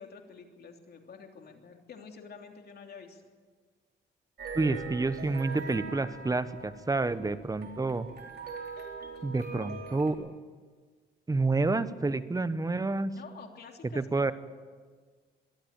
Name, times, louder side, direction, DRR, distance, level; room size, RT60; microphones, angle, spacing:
voice 1, 0.0-3.3 13.2-14.3, left 5 dB, 55° left, 3 dB, 3.2 m, -48 dB
sound 1, 4.4-10.1, right 5 dB, 55° right, 3.7 m, -42 dB
voice 2, 4.5-8.1 9.2-10.3 11.3-13.1 13.9-14.3, right 3 dB, 20° right, 13 dB, 1.1 m, -29 dB
22.0 x 13.5 x 9.0 m, 1.5 s
cardioid pair, 90°, 20 cm